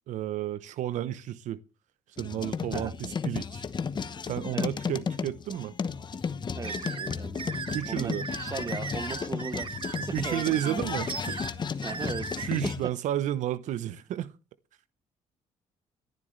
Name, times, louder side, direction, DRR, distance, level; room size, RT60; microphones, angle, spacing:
voice 1, 0.1-1.6 2.2-3.6 4.2-5.7 7.7-8.2 10.1-11.4 12.4-14.3, right 12 dB, 80° right, 0.8 m, -32 dB
sound 1, 2.2-12.9, left 6 dB, 35° left, 1.0 m, -34 dB
voice 2, 6.5-7.4 7.9-9.7 10.1-10.8 11.8-12.9, right 4 dB, 30° right, 1.0 m, -38 dB
sound 2, 6.6-12.6, right 5 dB, 45° right, 1.5 m, -37 dB
22.5 x 10.5 x 3.2 m
cardioid pair, 90°, 12 cm